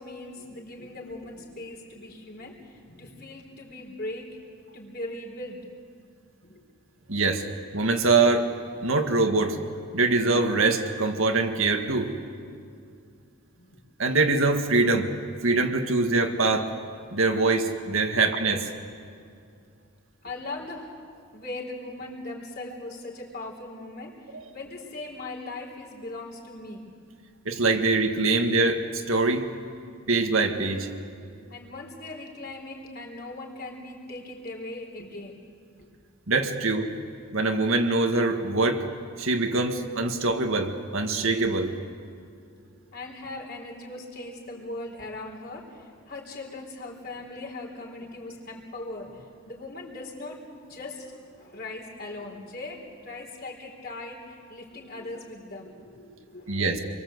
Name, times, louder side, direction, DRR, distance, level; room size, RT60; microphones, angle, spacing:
voice 1, 0.0-4.4 4.7-5.7 6.4-6.6 13.6-13.8 18.1-18.3 20.2-20.9 21.3-26.9 29.7-29.9 31.0-31.1 31.5-35.4 35.8-35.9 42.2-42.4 42.7-56.6, left 2 dB, 45° left, -1 dB, 4.0 m, -39 dB
voice 2, 7.1-7.4 7.7-8.5 8.8-9.6 9.9-12.1 14.0-15.1 15.4-16.7 17.1-18.6 24.3-24.4 27.5-29.5 30.1-30.9 36.3-36.9 37.3-38.8 39.2-41.8 56.5-56.8, right 3 dB, 65° right, 5 dB, 1.8 m, -23 dB
28.0 x 23.0 x 8.0 m, 2.3 s
head